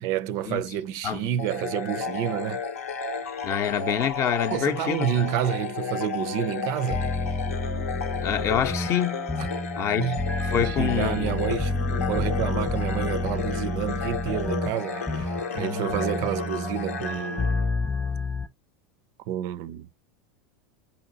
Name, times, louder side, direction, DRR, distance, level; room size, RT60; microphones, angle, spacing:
voice 1, 0.0-2.6 4.5-7.1 10.0-10.2 10.6-17.6 19.3-19.9, right 10 dB, 55° right, 0.4 m, -29 dB
sound 1, 1.4-18.1, left 5 dB, 90° left, 0.7 m, -33 dB
voice 2, 3.4-5.3 8.2-9.2 9.8-11.4, left 9 dB, 40° left, 0.6 m, -27 dB
sound 2, 6.9-18.5, left 2 dB, 15° left, 0.8 m, -30 dB
5.3 x 2.8 x 2.6 m
hypercardioid pair, 95°, 7 cm